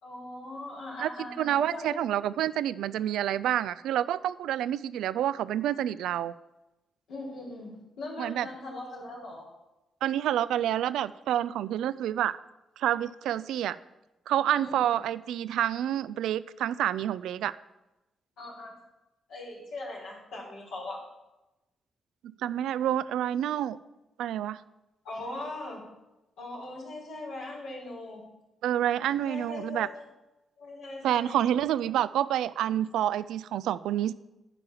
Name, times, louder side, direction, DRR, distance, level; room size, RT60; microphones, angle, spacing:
voice 1, 0.0-2.0 7.1-9.4 14.5-14.8 18.4-18.7 19.3-21.0 25.0-25.8 26.4-28.2 29.2-30.0 30.6-31.4, left 2 dB, 75° left, -4 dB, 3.5 m, -40 dB
voice 2, 1.4-6.3 8.2-8.5 10.0-12.4 12.8-13.8 14.3-17.6 22.2-23.8 24.2-24.6 28.6-29.9 31.0-34.1, right 11 dB, 75° right, 17 dB, 0.3 m, -28 dB
11.5 x 4.7 x 7.4 m, 0.97 s
hypercardioid pair, 45°, 0 cm